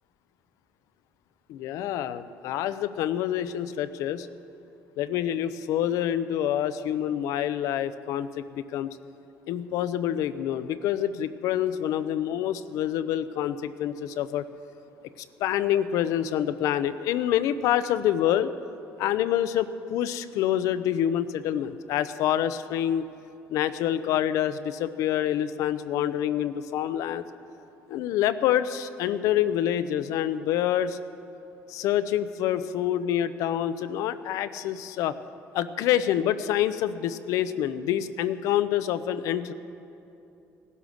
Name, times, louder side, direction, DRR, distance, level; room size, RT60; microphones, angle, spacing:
voice 1, 1.5-4.3 5.0-9.0 9.5-14.5 15.4-18.5 19.0-23.0 23.5-27.2 27.9-31.0 31.7-35.1 35.5-39.5, left 11 dB, 80° left, 13 dB, 0.6 m, -27 dB
17.5 x 11.0 x 6.4 m, 2.8 s
cardioid pair, 100°, 6 cm